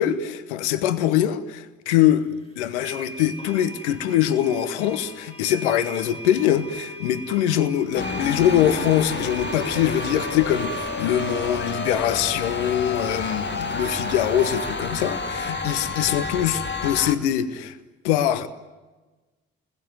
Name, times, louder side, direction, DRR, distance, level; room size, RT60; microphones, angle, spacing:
voice 1, 0.0-2.3 2.6-17.8 18.0-18.5, left 11 dB, 75° left, 1.2 m, -23 dB
sound 1, 1.9-2.0 2.8-14.4, right 2 dB, 15° left, 3.0 m, -41 dB
sound 2, 7.9-17.2, left 3 dB, 30° left, 2.1 m, -29 dB
29.0 x 21.0 x 9.4 m
figure-of-eight pair, 40°, 35 cm